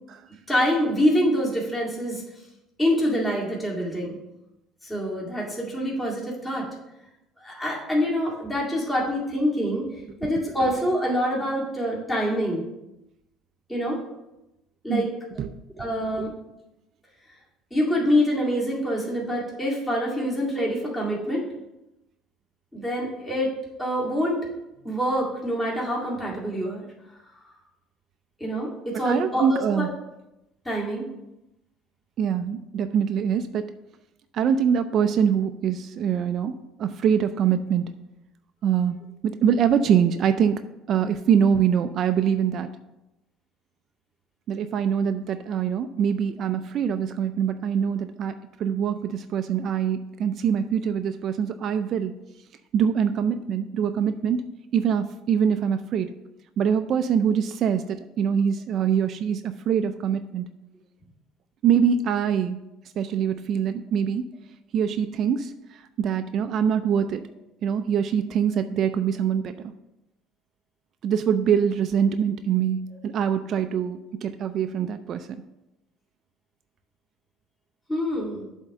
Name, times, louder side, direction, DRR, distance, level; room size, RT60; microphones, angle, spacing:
voice 1, 0.5-2.2 2.8-4.2 4.8-6.7 7.4-12.7 13.7-14.0 14.8-15.1 15.8-16.3 17.7-21.5 22.7-24.5 24.8-26.9 27.3-27.4 28.4-29.9 30.6-31.1 77.9-78.5, equal, 10° left, -4 dB, 2.2 m, -26 dB
voice 2, 29.0-29.9 32.2-33.7 34.3-37.8 38.6-39.0 39.2-40.6 40.9-42.7 44.5-52.2 52.7-54.4 54.7-56.1 56.6-60.5 61.6-62.6 63.0-64.3 64.7-67.3 67.6-69.7 71.0-75.4, right 8 dB, 50° right, 9 dB, 0.4 m, -24 dB
7.7 x 3.6 x 6.6 m, 0.93 s
cardioid pair, 115°, 0 cm